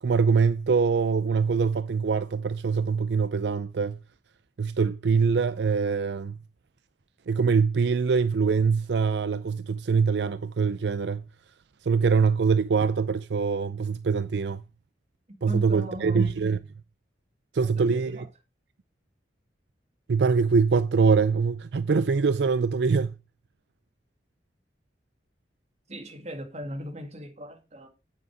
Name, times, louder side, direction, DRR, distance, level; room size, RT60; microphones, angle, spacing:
voice 1, 0.0-4.0 4.6-6.4 7.3-11.2 11.8-14.6 15.4-16.6 17.5-18.3 20.1-23.1, right 5 dB, 70° right, 0.4 m, -24 dB
voice 2, 15.5-16.3 17.6-18.2 25.9-27.9, equal, 40° right, 2.1 m, -38 dB
9.0 x 6.8 x 5.0 m
head